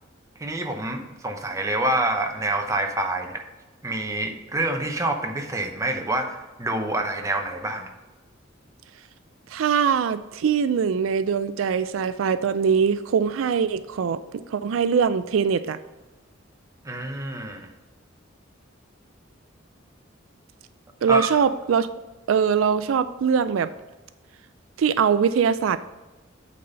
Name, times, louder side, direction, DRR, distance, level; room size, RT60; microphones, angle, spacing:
voice 1, 0.4-3.4 3.8-7.9 16.8-17.7 21.1-21.3, right 2 dB, 15° right, 4 dB, 0.8 m, -27 dB
voice 2, 9.5-14.2 14.5-15.8 21.0-21.9 22.3-23.7 24.8-25.8, right 6 dB, 85° right, 13 dB, 0.4 m, -22 dB
8.4 x 4.1 x 5.6 m, 1.1 s
head